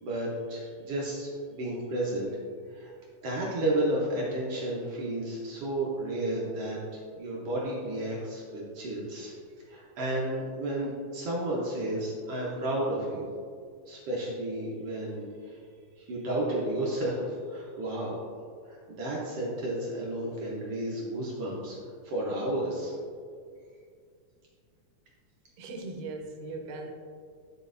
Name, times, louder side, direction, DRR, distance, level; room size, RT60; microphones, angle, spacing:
voice 1, 0.0-2.3 2.7-2.9 3.2-9.3 9.7-13.3 13.9-15.6 16.0-18.2 18.6-21.8 22.0-22.9, right 1 dB, 65° right, -5 dB, 1.6 m, -32 dB
voice 2, 25.6-26.9, right 3 dB, 90° right, 2 dB, 2.4 m, -39 dB
10.0 x 5.0 x 2.6 m, 2.2 s
omnidirectional pair, 3.7 m